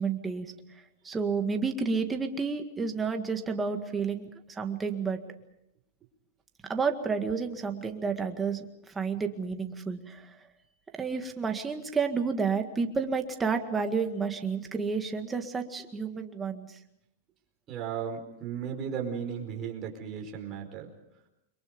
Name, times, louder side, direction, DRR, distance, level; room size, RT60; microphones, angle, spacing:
voice 1, 0.0-5.2 6.7-10.5 10.9-16.8, right 5 dB, 15° right, 5 dB, 1.8 m, -31 dB
voice 2, 17.7-20.9, right 7 dB, 30° right, 2 dB, 4.8 m, -35 dB
29.5 x 23.5 x 5.3 m, 0.81 s
supercardioid pair, 150°, 0 cm